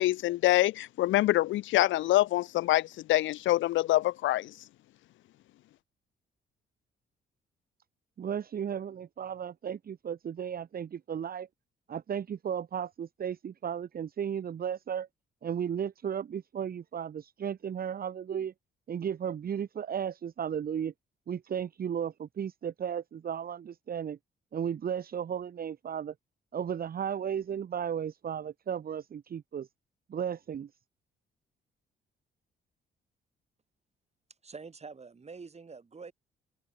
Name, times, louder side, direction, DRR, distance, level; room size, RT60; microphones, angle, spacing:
voice 1, 0.0-4.5, left 15 dB, 75° left, 0.5 m, -25 dB
voice 2, 8.2-11.5 11.9-15.1 15.4-18.5 18.9-20.9 21.3-24.2 24.5-26.1 26.5-29.7 30.1-30.7, right 8 dB, 50° right, 1.3 m, -34 dB
voice 3, 34.4-36.1, right 4 dB, 35° right, 7.2 m, -46 dB
open air
cardioid pair, 90°, 20 cm